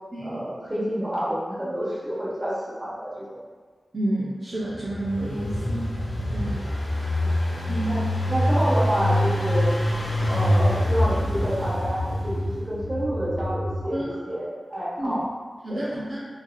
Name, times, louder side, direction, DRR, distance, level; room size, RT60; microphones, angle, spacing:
voice 1, 0.2-3.4 7.9-9.7 10.3-15.2 15.7-15.9, equal, 20° right, -8 dB, 1.1 m, -28 dB
voice 2, 3.9-5.9 6.3-6.7 7.7-8.0 13.9-14.0 15.0-15.1 15.6-16.2, right 1 dB, 40° right, -8 dB, 0.5 m, -29 dB
Engine, 4.7-12.8, left 1 dB, 90° left, 0.6 m, -25 dB
sound 1, 9.1-13.8, equal, 35° left, 0.6 m, -35 dB
3.2 x 2.5 x 2.2 m, 1.5 s
wide cardioid pair, 75°, 0 cm